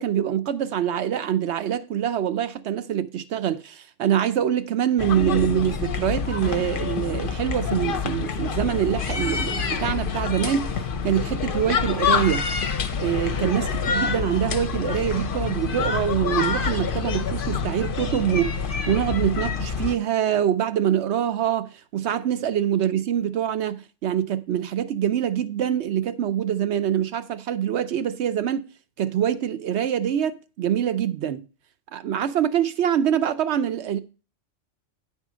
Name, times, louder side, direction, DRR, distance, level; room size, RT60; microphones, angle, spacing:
voice 1, 0.0-12.5 13.0-28.6 29.0-31.4 31.9-34.0, right 10 dB, 70° right, 0.9 m, -25 dB
sound 1, 5.0-20.0, left 6 dB, 50° left, 0.8 m, -27 dB
9.9 x 3.7 x 6.1 m
omnidirectional pair, 1.2 m